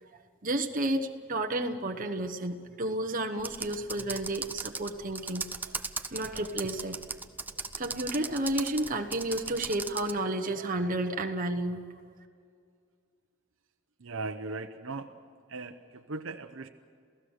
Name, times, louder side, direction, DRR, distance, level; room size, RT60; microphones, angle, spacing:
voice 1, 0.0-5.7 6.1-7.0 7.8-11.8, right 1 dB, 40° right, 3 dB, 1.1 m, -32 dB
Computer keyboard, 3.4-10.2, right 3 dB, 10° right, 0.7 m, -38 dB
voice 2, 14.0-15.2 15.5-16.7, right 3 dB, 70° right, 6 dB, 0.9 m, -38 dB
28.0 x 16.5 x 6.5 m, 2.2 s
head